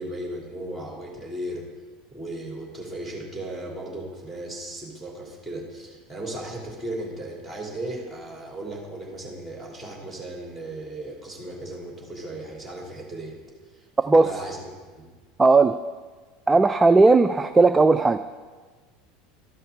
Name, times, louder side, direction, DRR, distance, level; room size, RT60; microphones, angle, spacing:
voice 1, 0.0-1.7 2.1-13.4 13.7-13.8 14.1-14.7 15.0-15.1, right 1 dB, ahead, -2 dB, 2.9 m, -36 dB
voice 2, 15.4-15.8 16.5-18.2, right 3 dB, 15° right, 10 dB, 0.3 m, -16 dB
12.5 x 5.7 x 4.9 m, 1.4 s
figure-of-eight pair, 75°, 0 cm